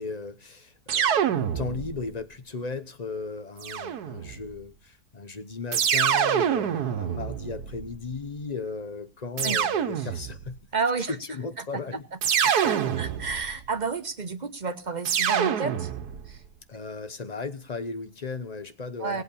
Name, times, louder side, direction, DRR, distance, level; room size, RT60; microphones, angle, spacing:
voice 1, 0.0-10.6 11.1-12.1 12.4-12.9 16.7-19.2, left 4 dB, 30° left, 0.8 m, -36 dB
sound 1, 0.9-2.1 3.6-4.5 5.7-8.0 9.4-10.5 12.2-13.6 15.1-16.3, right 8 dB, 75° right, 1.5 m, -26 dB
voice 2, 10.7-11.1 12.4-15.9 16.3-16.4 19.0-19.2, right 4 dB, 35° right, 0.9 m, -31 dB
18.5 x 8.2 x 7.0 m
omnidirectional pair, 1.7 m